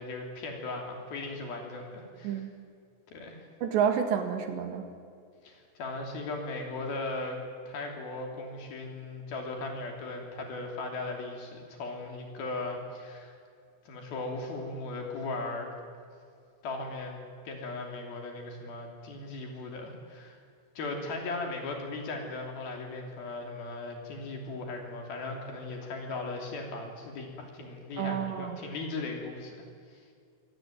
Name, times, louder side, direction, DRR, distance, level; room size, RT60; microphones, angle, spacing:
voice 1, 0.0-2.4 3.1-3.4 5.4-7.4 7.7-13.3 13.9-15.7 16.6-17.2 17.4-20.4 20.8-29.6, left 2 dB, 55° left, 2 dB, 4.6 m, -37 dB
voice 2, 3.6-4.8 28.0-28.6, right 8 dB, 75° right, 6 dB, 4.0 m, -29 dB
25.0 x 18.0 x 9.2 m, 2.3 s
omnidirectional pair, 5.3 m